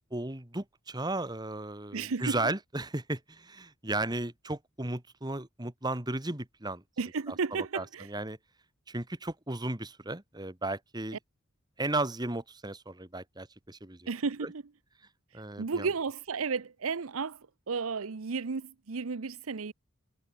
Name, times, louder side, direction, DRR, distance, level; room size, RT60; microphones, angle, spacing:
voice 1, 0.1-6.8 7.7-8.4 8.9-11.2 11.8-14.1 14.4-14.5 15.3-15.9, right 2 dB, 20° right, 1.7 m, -35 dB
voice 2, 1.9-2.4 7.0-8.1 14.1-14.6 15.6-17.4 17.7-19.7, right 5 dB, 85° right, 0.7 m, -33 dB
head